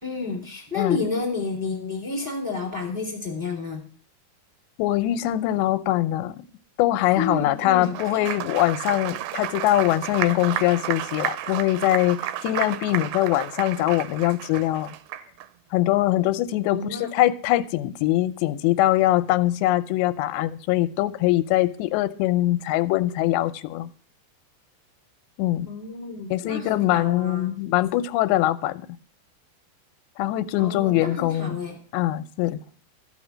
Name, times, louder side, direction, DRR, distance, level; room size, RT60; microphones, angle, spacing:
voice 1, 0.0-3.9 7.2-8.4 16.7-17.2 25.6-27.5 30.6-31.8, left 4 dB, 15° right, 1 dB, 2.4 m, -30 dB
voice 2, 4.8-6.4 6.8-15.0 15.7-23.9 25.4-25.7 26.3-28.9 30.2-31.6 31.9-32.6, left 15 dB, 90° left, 13 dB, 2.9 m, -22 dB
Applause, 7.7-15.5, right 13 dB, 85° right, 2.8 m, -32 dB
14.0 x 5.8 x 7.4 m, 0.43 s
omnidirectional pair, 4.9 m